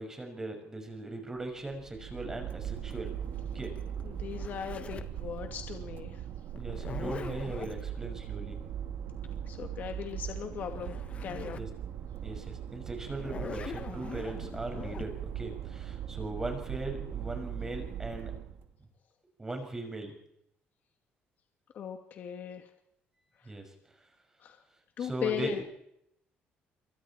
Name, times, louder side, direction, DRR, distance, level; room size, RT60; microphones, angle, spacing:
voice 1, 0.0-3.1 3.5-3.7 6.5-8.6 11.5-11.7 12.2-12.4 12.7-18.3 19.4-20.1 23.5-23.6 25.0-25.6, right 2 dB, 15° right, 4 dB, 6.1 m, -39 dB
sound 1, 1.4-18.7, right 9 dB, 70° right, 1.9 m, -39 dB
Zipper (clothing), 2.5-5.2 6.5-7.8 10.4-10.5 10.7-11.7 12.2-12.3 13.1-15.1, left 6 dB, 35° left, 1.5 m, -43 dB
voice 2, 4.1-6.2 9.5-10.9 11.2-11.6 21.7-22.7 24.4-24.6 25.0-25.6, left 8 dB, 50° left, 4 dB, 2.4 m, -37 dB
27.5 x 24.5 x 4.5 m, 0.76 s
cardioid pair, 150°, 4 cm